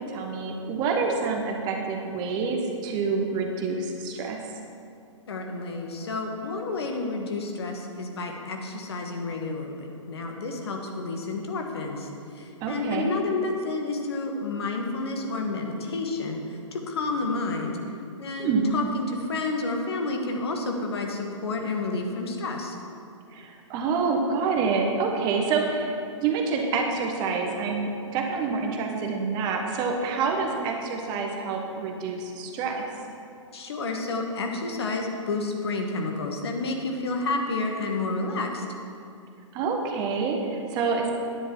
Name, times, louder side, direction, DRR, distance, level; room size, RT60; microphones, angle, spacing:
voice 1, 0.0-4.4 12.6-13.1 18.4-18.6 23.3-25.9 26.2-32.8 39.5-41.1, right 4 dB, 25° right, 2 dB, 1.2 m, -27 dB
voice 2, 5.3-9.7 10.1-12.1 12.7-16.4 16.9-17.8 18.2-22.7 33.5-38.6, left 3 dB, 55° left, 2 dB, 1.4 m, -30 dB
10.0 x 9.7 x 4.7 m, 2.6 s
figure-of-eight pair, 115°, 16 cm